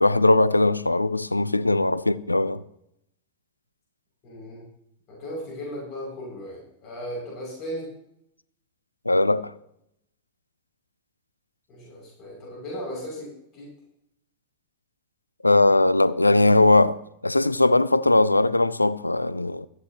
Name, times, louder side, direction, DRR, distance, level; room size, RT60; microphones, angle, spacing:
voice 1, 0.0-2.6 9.1-9.5 15.4-17.0 17.2-19.7, left 2 dB, 85° left, 0.4 m, -20 dB
voice 2, 4.2-4.6 5.1-7.9 11.7-13.7, equal, 35° left, 6.6 m, -36 dB
17.0 x 13.0 x 3.0 m
figure-of-eight pair, 90°, 0 cm